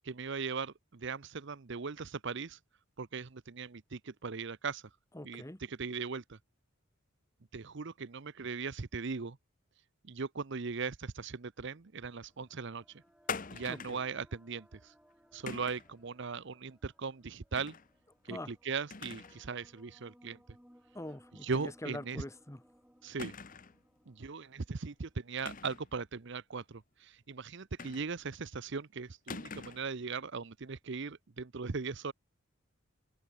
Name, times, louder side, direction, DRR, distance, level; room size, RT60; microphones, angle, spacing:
voice 1, 0.0-2.6 3.0-4.8 5.2-5.4 5.7-6.4 7.5-9.4 10.0-12.8 13.5-14.9 15.3-17.8 18.3-20.4 21.4-22.2 23.0-23.3 24.1-32.1, right 5 dB, 55° right, 0.7 m, -39 dB
voice 2, 5.1-5.6 13.7-14.0 18.3-18.5 20.9-22.6, left 1 dB, 15° left, 1.1 m, -44 dB
sound 1, 11.8-25.8, equal, 5° right, 7.9 m, -65 dB
sound 2, 13.3-14.1 15.5-15.9 17.6-17.9 18.3-18.4 18.9-19.4 19.8-19.9 21.5-21.7 22.0-22.1 23.2-23.8 25.4-25.9 27.8-28.4 29.3-29.9, left 5 dB, 40° left, 1.1 m, -43 dB
open air
head